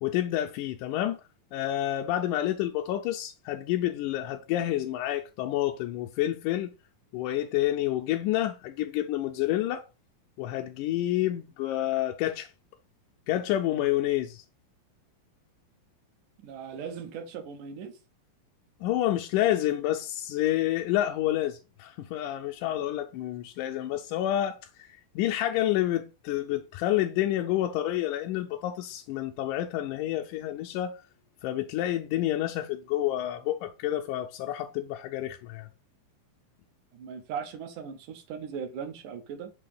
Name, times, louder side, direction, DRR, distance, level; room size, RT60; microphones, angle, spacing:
voice 1, 0.0-1.2 1.5-6.7 7.1-9.8 10.4-12.5 13.3-14.4 18.8-24.9 25.2-31.0 31.4-35.7, left 13 dB, 80° left, 1.9 m, -29 dB
voice 2, 16.4-17.9 36.9-39.5, right 7 dB, 70° right, 2.2 m, -38 dB
6.7 x 2.9 x 5.3 m
omnidirectional pair, 4.1 m